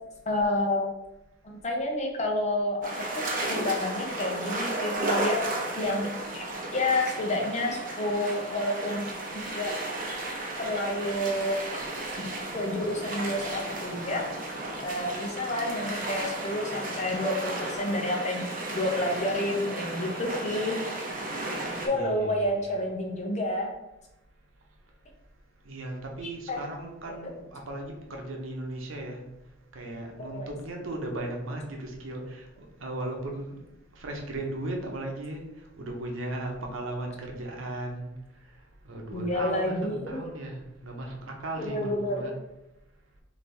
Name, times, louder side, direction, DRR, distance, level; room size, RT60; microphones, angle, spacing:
voice 1, 0.3-0.9 1.4-5.4 5.8-6.5 6.7-9.1 9.3-9.8 10.6-11.6 12.2-12.3 12.5-14.3 14.8-20.8 21.8-23.7 26.2-26.6 27.2-27.3 30.2-30.5 39.1-40.2 41.6-42.3, left 1 dB, 35° left, 1 dB, 0.8 m, -29 dB
sound 1, 2.8-21.9, right 2 dB, 45° right, 0.8 m, -34 dB
voice 2, 21.9-22.7 25.6-29.2 29.7-33.7 33.9-35.4 35.8-38.1 38.8-42.3, right 1 dB, 90° right, 1 dB, 0.9 m, -36 dB
3.4 x 2.9 x 4.3 m, 0.93 s
head